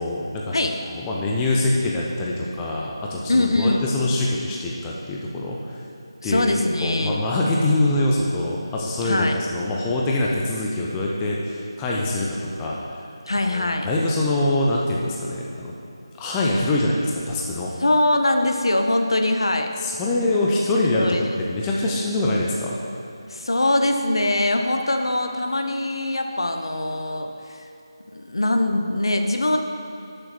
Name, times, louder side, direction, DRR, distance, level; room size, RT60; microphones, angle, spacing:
voice 1, 0.0-5.6 6.2-12.8 13.5-15.7 16.2-17.7 19.8-22.8, left 2 dB, 10° left, -3 dB, 0.7 m, -24 dB
voice 2, 3.3-3.8 6.2-7.2 9.0-9.4 13.3-13.9 17.8-19.7 21.0-21.2 23.3-27.3 27.6-27.7 28.1-29.6, left 1 dB, 65° left, 5 dB, 0.9 m, -22 dB
11.5 x 6.7 x 4.2 m, 2.9 s
figure-of-eight pair, 160°, 3 cm